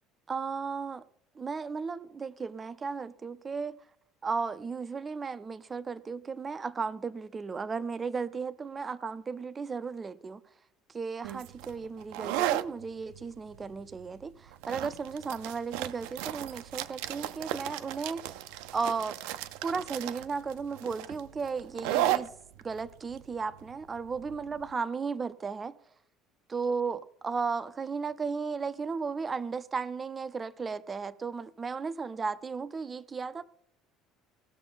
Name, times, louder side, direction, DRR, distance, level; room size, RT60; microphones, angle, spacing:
voice 1, 0.3-1.0 1.4-3.8 4.2-10.4 10.9-18.2 18.7-19.2 19.6-22.3 22.6-25.7 26.5-33.4, right 5 dB, 20° right, 0.5 m, -35 dB
sound 1, 11.2-24.7, right 13 dB, 85° right, 0.6 m, -35 dB
19.0 x 6.8 x 3.9 m
cardioid pair, 170°, 0 cm